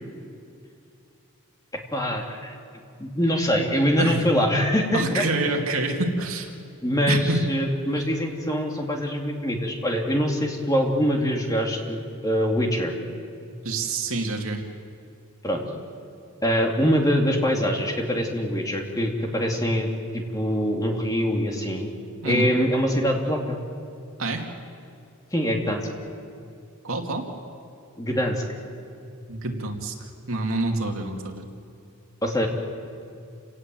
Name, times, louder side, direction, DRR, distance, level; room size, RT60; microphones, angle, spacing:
voice 1, 1.9-2.6 3.0-5.3 6.8-12.9 15.4-15.6 16.4-19.9 20.1-21.9 22.3-23.6 25.3-25.9 28.0-28.4 32.2-32.5, equal, 15° left, 1 dB, 2.7 m, -24 dB
voice 2, 4.9-6.5 7.1-7.4 13.6-14.6 22.2-22.5 24.2-24.4 26.8-27.3 29.3-31.4, right 2 dB, 70° right, 2 dB, 2.6 m, -27 dB
29.0 x 18.0 x 7.8 m, 2.5 s
head